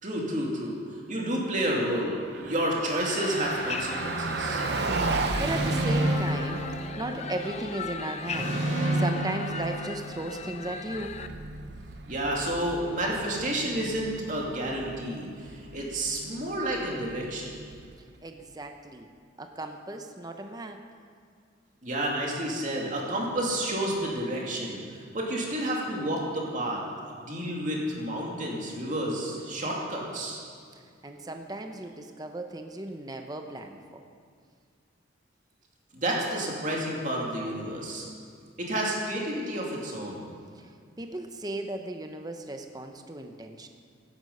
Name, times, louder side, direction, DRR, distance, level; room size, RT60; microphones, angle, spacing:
voice 1, 0.0-5.1 12.1-17.5 21.8-26.8 27.2-30.4 35.9-38.1 38.6-40.3, right 1 dB, 40° right, -2 dB, 2.6 m, -30 dB
Car passing by, 2.0-18.2, right 3 dB, 55° right, 0.7 m, -36 dB
sound 1, 3.0-11.3, left 5 dB, 35° left, 0.6 m, -38 dB
sound 2, 5.3-7.5 8.3-10.5, right 1 dB, 75° right, 2.3 m, -29 dB
voice 2, 5.4-6.6 7.0-11.1 18.2-19.1 19.4-20.8 31.0-34.0 40.5-40.7 41.0-43.7, right 2 dB, 20° right, 5 dB, 0.8 m, -36 dB
16.0 x 11.5 x 5.5 m, 2.2 s
head